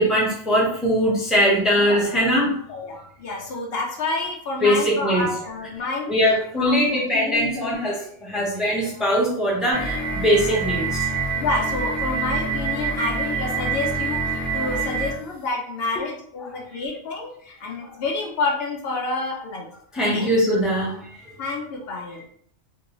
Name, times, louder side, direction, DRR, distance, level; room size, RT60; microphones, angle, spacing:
voice 1, 0.0-2.6 2.9-3.0 4.6-5.3 6.1-11.2 14.5-14.7 19.9-21.2, equal, ahead, -5 dB, 0.6 m, -21 dB
voice 2, 2.7-6.1 6.5-7.8 8.3-8.5 10.4-10.6 11.4-19.7 20.0-20.3 21.4-22.2, left 3 dB, 65° left, 0 dB, 0.7 m, -29 dB
sound 1, 9.7-15.2, right 4 dB, 35° left, 1.2 m, -26 dB
2.6 x 2.4 x 2.9 m, 0.64 s
omnidirectional pair, 1.2 m